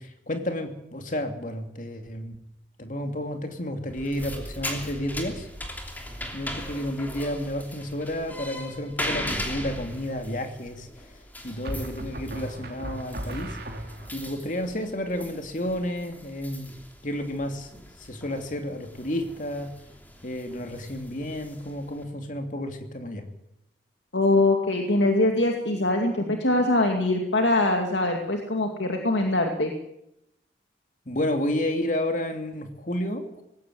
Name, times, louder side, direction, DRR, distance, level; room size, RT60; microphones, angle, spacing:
voice 1, 0.0-2.4 2.8-5.5 6.3-11.1 11.4-13.6 14.1-16.7 17.0-19.8 20.2-23.3 31.1-33.4, left 1 dB, 45° left, 5 dB, 2.7 m, -31 dB
sound 1, 3.9-22.0, left 1 dB, 10° left, 3.0 m, -39 dB
sound 2, 11.7-14.3, right 1 dB, 55° right, 3.0 m, -36 dB
voice 2, 24.1-29.7, left 2 dB, 85° left, 3 dB, 2.4 m, -23 dB
20.0 x 16.5 x 9.3 m, 0.84 s
head